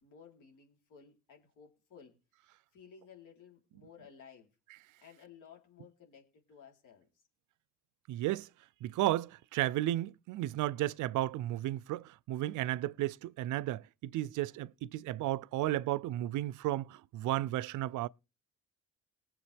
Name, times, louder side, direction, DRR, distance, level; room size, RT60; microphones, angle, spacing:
voice 1, 0.0-2.1 2.4-4.5 5.0-7.1, left 7 dB, 80° left, 3.8 m, -56 dB
voice 2, 8.1-8.5 8.8-18.1, right 15 dB, 80° right, 0.5 m, -33 dB
20.0 x 7.4 x 3.4 m
cardioid pair, 90°, 30 cm